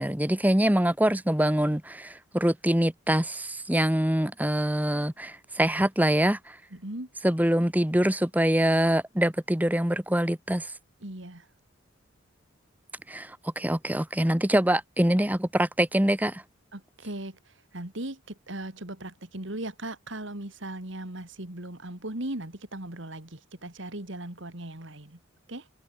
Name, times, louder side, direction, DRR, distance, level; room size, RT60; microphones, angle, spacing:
voice 1, 0.0-6.6 7.2-10.7 13.1-16.4, right 1 dB, 10° right, 1.1 m, -24 dB
voice 2, 6.7-7.1 11.0-11.5 16.7-25.2 25.5-25.7, right 1 dB, 60° right, 2.8 m, -38 dB
head